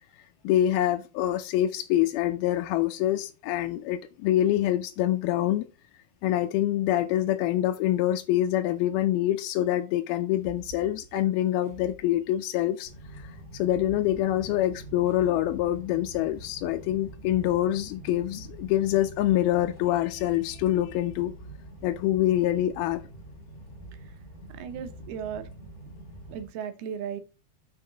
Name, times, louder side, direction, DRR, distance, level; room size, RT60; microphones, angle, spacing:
voice 1, 0.2-5.7 6.2-21.3 21.8-23.0, left 13 dB, 80° left, 2.4 m, -26 dB
sound 1, 10.3-12.9 13.7-16.2 17.2-17.5, right 11 dB, 60° right, 2.2 m, -50 dB
sound 2, 12.8-26.4, right 1 dB, 20° left, 3.1 m, -45 dB
voice 2, 24.6-25.4 26.3-27.2, right 8 dB, 80° right, 2.8 m, -35 dB
6.4 x 5.7 x 3.9 m
omnidirectional pair, 4.5 m